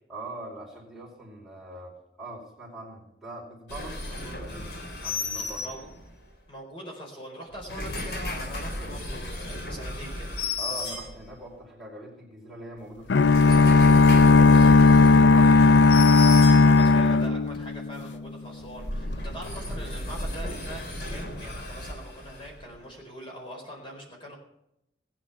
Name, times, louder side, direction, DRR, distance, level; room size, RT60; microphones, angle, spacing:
voice 1, 0.1-5.7 10.6-15.9, right 2 dB, ahead, -5 dB, 4.9 m, -42 dB
sound 1, 3.7-6.2 7.5-11.5 13.0-17.1 18.6-22.8, left 2 dB, 65° left, 3.0 m, -34 dB
voice 2, 5.4-5.9 6.5-10.3 16.6-24.3, equal, 30° left, -1 dB, 4.4 m, -42 dB
sound 2, 13.1-18.1, left 3 dB, 85° left, 0.5 m, -16 dB
19.5 x 10.0 x 5.8 m, 0.81 s
head